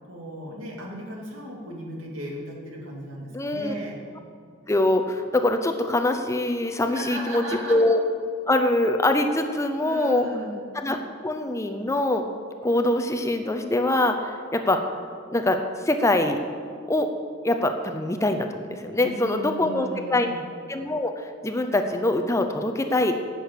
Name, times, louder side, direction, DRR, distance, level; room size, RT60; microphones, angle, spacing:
voice 1, 0.1-4.0 6.9-7.8 9.8-10.7 19.0-20.4, right 1 dB, 70° right, -2 dB, 2.5 m, -36 dB
voice 2, 3.3-3.7 4.7-8.0 8.5-10.3 10.7-11.0 11.2-12.2 12.6-14.9 15.3-16.4 16.9-17.1 17.4-20.3 20.7-23.1, left 1 dB, 15° left, 6 dB, 0.5 m, -23 dB
10.5 x 6.7 x 8.3 m, 2.3 s
head